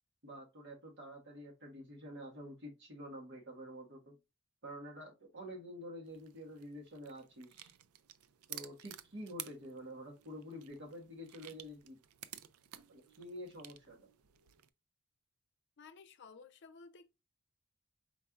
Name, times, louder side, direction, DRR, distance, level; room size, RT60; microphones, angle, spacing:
voice 1, 0.2-4.2 4.6-7.7 8.5-12.0 12.9-14.0, equal, 55° right, 1.6 m, -48 dB
sound 1, 6.1-14.7, right 12 dB, 80° right, 0.4 m, -53 dB
voice 2, 15.8-17.1, left 4 dB, 55° left, 0.6 m, -55 dB
4.6 x 4.4 x 2.4 m
head